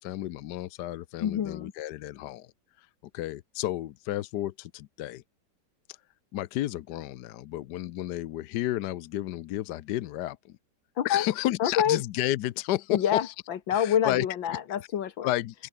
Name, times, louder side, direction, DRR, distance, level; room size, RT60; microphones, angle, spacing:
voice 1, 0.0-2.5 2.8-2.9 3.1-5.2 6.3-10.6 11.0-13.3 13.7-14.6 15.2-15.7, left 14 dB, 70° left, 1.2 m, -32 dB
voice 2, 1.2-1.7 11.0-11.3 11.6-12.0 12.9-15.3, left 9 dB, 90° left, 2.1 m, -27 dB
open air
omnidirectional pair, 2.0 m